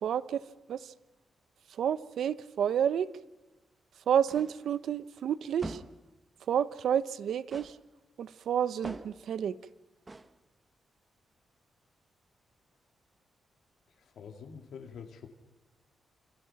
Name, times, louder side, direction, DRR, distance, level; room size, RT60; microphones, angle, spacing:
voice 1, 0.0-0.4 0.7-0.9 1.8-3.1 4.1-5.8 6.5-7.8 8.2-9.6, right 9 dB, 75° right, 15 dB, 0.9 m, -30 dB
sound 1, 4.3-4.7 5.6-6.1 7.5-7.9 8.8-9.3 10.1-10.4, right 2 dB, 20° right, 1.2 m, -43 dB
voice 2, 14.0-15.3, left 6 dB, 75° left, 3 dB, 2.4 m, -46 dB
28.0 x 27.0 x 5.9 m, 1.1 s
wide cardioid pair, 135°, 0 cm